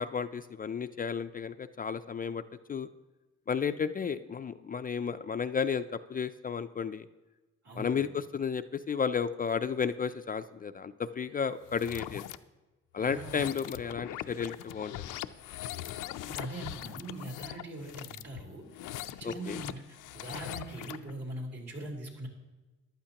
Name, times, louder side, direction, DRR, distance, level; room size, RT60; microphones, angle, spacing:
voice 1, 0.0-2.4 2.7-2.9 3.5-7.1 7.8-12.2 12.9-14.9 19.2-19.6, left 6 dB, 30° left, 10 dB, 0.4 m, -33 dB
voice 2, 7.6-8.1 13.0-13.6 16.3-18.7 19.0-22.3, right 2 dB, 60° right, -2 dB, 3.6 m, -42 dB
sound 1, 11.6-12.4 13.0-21.1, left 13 dB, 85° left, 0.5 m, -41 dB
14.5 x 11.5 x 2.9 m, 1.2 s
cardioid pair, 90°, 30 cm